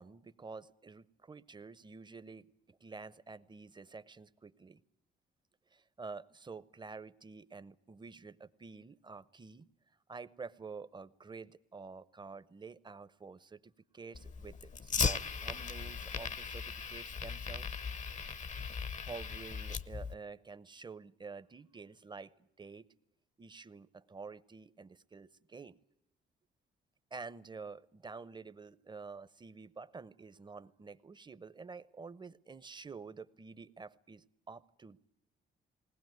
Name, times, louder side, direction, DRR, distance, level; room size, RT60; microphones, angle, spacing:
voice 1, 0.0-4.8 5.7-9.7 10.1-17.7 19.0-22.9 23.4-25.8 27.1-35.1, right 4 dB, 20° right, 16 dB, 0.8 m, -49 dB
Fire, 14.1-20.1, left 5 dB, 40° left, 0.8 m, -38 dB
20.0 x 19.0 x 9.4 m, 0.81 s
cardioid pair, 90°, 20 cm